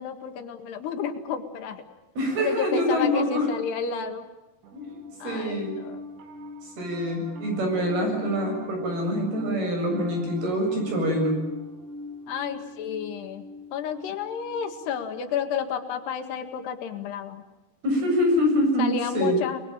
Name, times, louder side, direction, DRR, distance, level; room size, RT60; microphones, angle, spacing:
voice 1, 0.0-1.8 2.4-4.3 5.2-6.0 7.7-8.0 12.3-17.4 18.8-19.6, left 7 dB, 80° left, 7 dB, 4.0 m, -31 dB
voice 2, 2.2-3.5 4.7-4.9 5.2-5.8 6.8-11.4 17.8-19.4, equal, 65° right, 2 dB, 9.6 m, -25 dB
Piano, 4.6-16.1, left 1 dB, 90° right, 5.0 m, -41 dB
29.0 x 21.0 x 8.9 m, 1.0 s
omnidirectional pair, 4.7 m